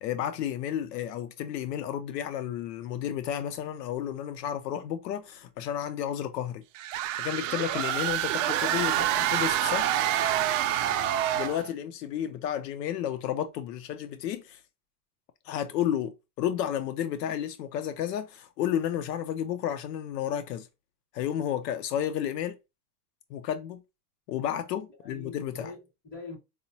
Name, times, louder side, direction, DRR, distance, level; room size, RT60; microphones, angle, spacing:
voice 1, 0.0-6.6 7.0-9.9 11.4-14.6 15.4-20.7 21.1-22.6 23.3-23.8 24.3-25.7, left 10 dB, 80° left, 0.6 m, -32 dB
sound 1, 6.8-11.7, right 11 dB, 55° right, 0.5 m, -27 dB
voice 2, 10.8-11.2 25.0-26.4, left 3 dB, 20° left, 2.0 m, -44 dB
4.9 x 2.1 x 2.7 m
supercardioid pair, 155°, 48 cm